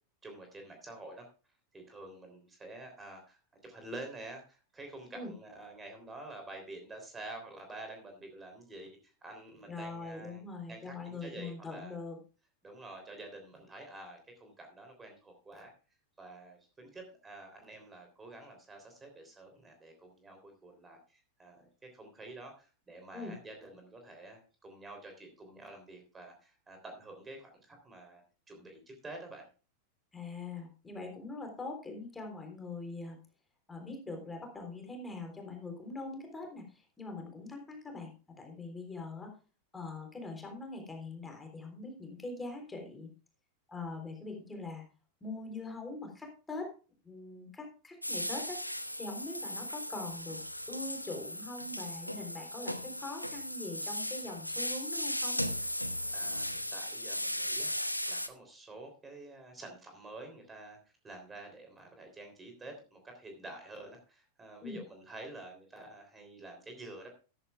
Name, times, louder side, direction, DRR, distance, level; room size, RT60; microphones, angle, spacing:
voice 1, 0.2-1.3 1.7-3.4 3.6-10.4 10.7-11.9 12.6-15.7 16.2-21.6 21.9-28.2 28.5-29.5 56.1-57.7 58.1-60.8 61.0-67.1, right 2 dB, 15° right, 5 dB, 3.3 m, -48 dB
voice 2, 9.7-12.2 23.1-23.3 30.1-33.2 33.7-38.1 38.4-39.3 39.7-43.1 43.7-44.8 45.2-46.7 47.0-48.6 49.0-50.4 50.7-55.4 64.6-64.8, left 3 dB, 10° left, 3 dB, 3.6 m, -42 dB
sound 1, 48.0-58.3, equal, 90° left, 0.8 m, -37 dB
14.0 x 13.0 x 2.4 m, 0.35 s
figure-of-eight pair, 90°, 0 cm